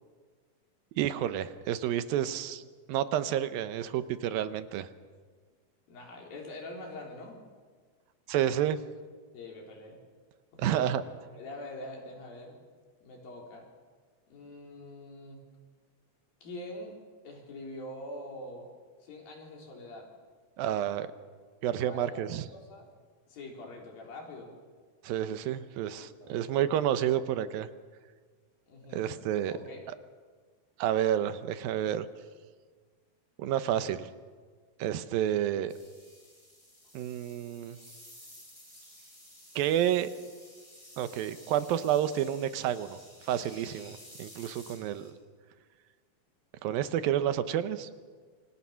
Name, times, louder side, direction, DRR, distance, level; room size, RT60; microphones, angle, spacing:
voice 1, 1.0-2.6 2.9-4.9 8.3-8.8 10.6-11.0 20.6-21.1 21.6-22.5 25.0-27.7 28.9-29.5 30.8-32.1 33.4-34.1 34.8-35.7 36.9-37.8 39.6-40.1 41.0-43.0 43.2-45.1 46.6-47.9, right 11 dB, 85° right, 12 dB, 2.7 m, -30 dB
voice 2, 5.9-7.4 9.3-10.0 10.5-10.9 11.3-12.6 13.0-13.7 14.3-15.4 16.4-17.0 17.2-18.7 19.0-20.1 21.8-22.9 23.3-24.5 26.0-26.7 28.7-29.8 46.9-47.0, left 1 dB, 80° left, 0 dB, 5.6 m, -44 dB
sound 1, 35.7-45.1, left 1 dB, 10° left, 5.5 m, -53 dB
27.0 x 25.5 x 5.8 m, 1.5 s
omnidirectional pair, 4.1 m